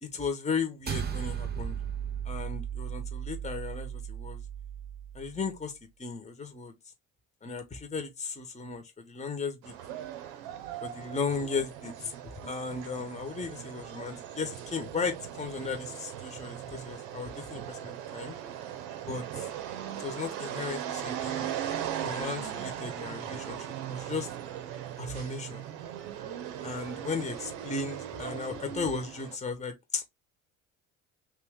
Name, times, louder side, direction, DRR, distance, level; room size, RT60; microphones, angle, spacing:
voice 1, 0.0-1.8 2.2-4.4 5.1-5.7 6.0-6.8 7.4-9.7 10.8-12.1 12.4-18.3 19.0-19.5 20.0-21.5 22.0-24.3 25.0-25.7 26.6-30.1, left 4 dB, 20° left, 1.1 m, -35 dB
sound 1, 0.9-5.4, right 8 dB, 25° right, 0.8 m, -36 dB
sound 2, 9.6-29.4, right 10 dB, 75° right, 0.8 m, -39 dB
3.1 x 2.9 x 3.6 m
hypercardioid pair, 70°, 38 cm